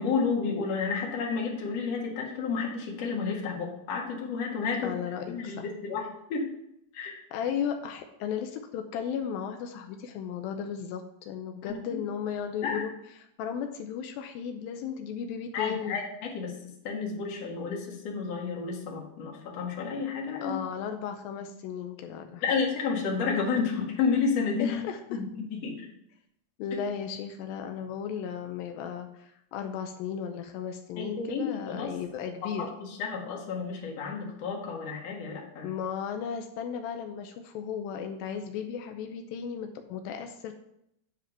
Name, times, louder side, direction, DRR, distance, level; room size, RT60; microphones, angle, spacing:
voice 1, 0.0-5.0 5.3-6.5 6.9-7.2 11.7-12.0 12.6-12.8 15.5-20.6 22.4-24.7 25.1-25.9 31.0-31.9 32.4-35.7, left 5 dB, 50° left, -1 dB, 2.4 m, -31 dB
voice 2, 4.8-5.7 7.3-12.9 13.4-16.0 20.4-22.4 24.6-25.2 26.6-32.7 35.6-40.5, left 7 dB, 85° left, 5 dB, 2.4 m, -35 dB
9.3 x 4.9 x 5.8 m, 0.78 s
omnidirectional pair, 4.2 m